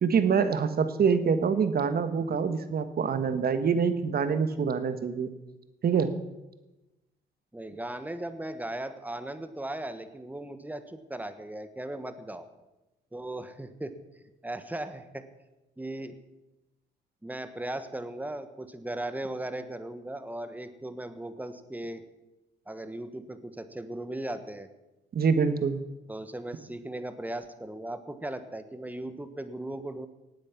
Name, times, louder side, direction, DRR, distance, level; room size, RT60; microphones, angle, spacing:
voice 1, 0.0-5.3 5.8-6.1 25.1-25.8, right 6 dB, 50° right, 10 dB, 1.3 m, -25 dB
voice 2, 7.5-12.5 13.1-13.9 14.4-15.3 15.8-16.1 17.2-22.0 22.7-24.7 26.1-30.1, right 1 dB, 10° right, 10 dB, 1.3 m, -37 dB
18.0 x 8.7 x 5.9 m, 1.0 s
cardioid pair, 90°, 20 cm